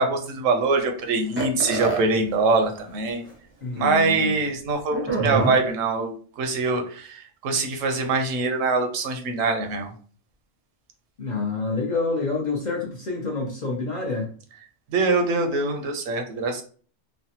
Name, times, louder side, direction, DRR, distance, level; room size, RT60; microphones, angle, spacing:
voice 1, 0.0-3.2 3.8-9.9 14.9-16.6, right 3 dB, 85° right, 5 dB, 1.0 m, -23 dB
sound 1, 1.4-2.0 2.9-3.0 3.3-3.4 4.9-5.5, right 4 dB, 15° right, 0.4 m, -25 dB
voice 2, 3.6-4.3 11.2-14.3, left 3 dB, 50° left, -2 dB, 0.6 m, -27 dB
3.2 x 2.0 x 2.8 m, 0.43 s
omnidirectional pair, 1.3 m